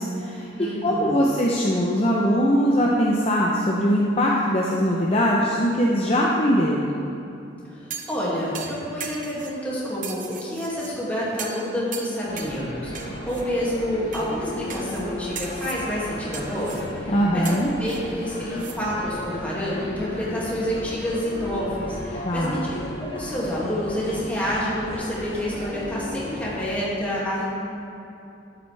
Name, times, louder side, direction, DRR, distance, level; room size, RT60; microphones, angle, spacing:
voice 1, 0.0-0.5 0.8-6.9 17.1-17.7 22.3-22.7, equal, 30° left, -3 dB, 0.7 m, -21 dB
voice 2, 0.6-1.3 7.7-27.4, equal, 10° left, -8 dB, 2.4 m, -28 dB
sound 1, 7.9-8.2 8.5-9.6 10.0-10.9 11.4-11.6 11.9-12.6 12.9-13.4 14.1-14.3 14.7-15.0 15.3-15.8 16.3-16.9 17.4-18.8 19.1-19.2, right 6 dB, 40° right, 0.8 m, -37 dB
sound 2, 12.3-26.7, equal, 55° left, 2.1 m, -35 dB
12.0 x 8.7 x 3.5 m, 2.7 s
head